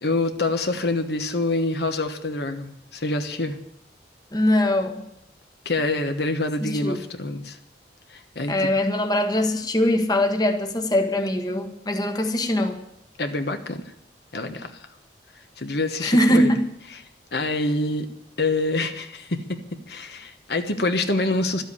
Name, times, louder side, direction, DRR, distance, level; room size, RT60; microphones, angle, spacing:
voice 1, 0.0-3.6 5.6-7.6 8.1-8.7 13.2-13.8 14.3-14.7 15.6-16.5 17.3-18.1 18.4-19.6 19.9-21.6, left 2 dB, 65° left, 6 dB, 1.2 m, -26 dB
voice 2, 4.3-5.0 6.6-7.0 8.5-12.8 16.0-16.7, left 1 dB, 20° left, 5 dB, 1.2 m, -22 dB
13.0 x 8.0 x 9.9 m, 0.78 s
head